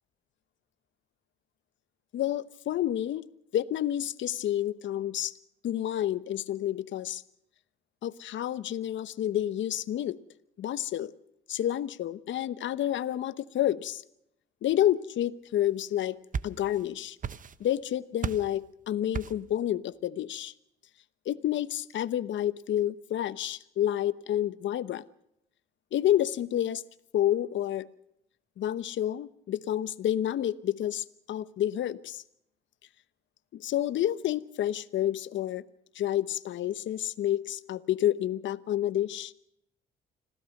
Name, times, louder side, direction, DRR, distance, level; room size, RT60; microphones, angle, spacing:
voice 1, 2.1-3.2 3.5-5.3 5.6-7.2 8.0-10.2 10.6-11.1 11.5-14.0 14.6-16.2 16.4-17.2 17.6-20.5 21.3-25.0 25.9-26.8 27.1-27.9 28.6-32.2 33.5-35.6 35.9-39.3, left 12 dB, 70° left, 17 dB, 1.0 m, -29 dB
sound 1, 15.9-16.9 17.2-17.8 18.2-18.6 19.1-19.5, right 6 dB, 40° right, 0.9 m, -35 dB
26.0 x 16.0 x 6.6 m, 0.77 s
cardioid pair, 90°, 20 cm